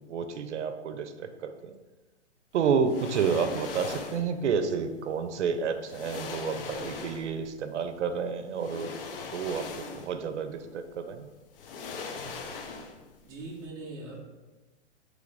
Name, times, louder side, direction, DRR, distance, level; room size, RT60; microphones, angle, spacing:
voice 1, 0.0-1.7 2.5-8.9 9.3-11.3, right 6 dB, 75° right, 8 dB, 0.5 m, -30 dB
sound 1, 2.8-4.3 5.4-5.5 5.9-7.5 8.5-10.3 10.6-10.7 11.5-13.2 13.4-13.6, left 4 dB, 50° left, 0.5 m, -39 dB
voice 2, 13.2-14.2, right 2 dB, 10° right, -4 dB, 0.4 m, -41 dB
3.2 x 3.0 x 3.8 m, 1.1 s
hypercardioid pair, 135°, 35 cm